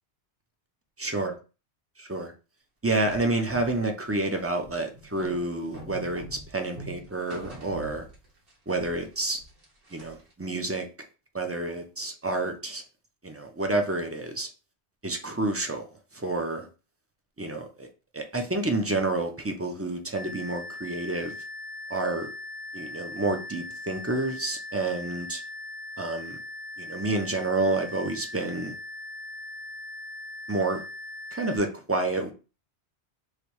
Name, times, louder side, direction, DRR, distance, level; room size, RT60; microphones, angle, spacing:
voice 1, 1.0-1.3 2.0-2.3 2.8-8.1 8.7-9.4 9.9-10.9 11.3-12.8 13.2-14.5 15.0-15.9 16.1-16.7 17.4-17.9 18.1-21.3 21.9-22.3 22.7-25.4 26.0-26.4 26.8-28.7 30.5-30.8 31.3-32.3, right 2 dB, 20° right, 4 dB, 0.5 m, -29 dB
sound 1, 3.1-8.5 8.8-10.3, right 2 dB, 55° right, 1.4 m, -44 dB
sound 2, 20.2-31.6, left 2 dB, 40° left, 0.5 m, -40 dB
3.3 x 3.1 x 4.7 m, 0.33 s
omnidirectional pair, 1.2 m